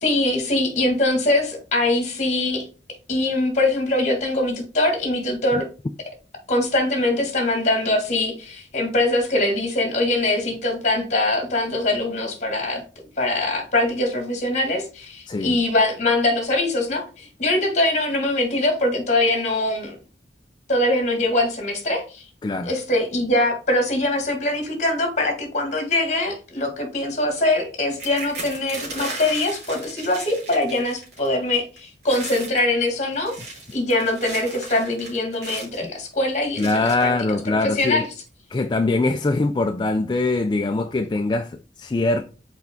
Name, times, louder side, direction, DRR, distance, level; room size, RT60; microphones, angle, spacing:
voice 1, 0.0-2.6 3.1-5.6 6.5-12.8 13.2-20.0 20.7-22.3 22.6-33.3 33.7-37.1 37.5-38.1, left 2 dB, 40° left, 1.8 m, -22 dB
voice 2, 22.4-22.7 35.8-35.9 36.6-38.0 38.5-42.2, left 2 dB, 25° left, 0.3 m, -22 dB
sound 1, 27.9-31.3 31.5-31.8 32.0-32.6 33.1-35.8 36.6-37.1 37.8-37.9 38.3-38.5, right 2 dB, 60° right, 2.5 m, -36 dB
5.9 x 4.5 x 3.6 m
head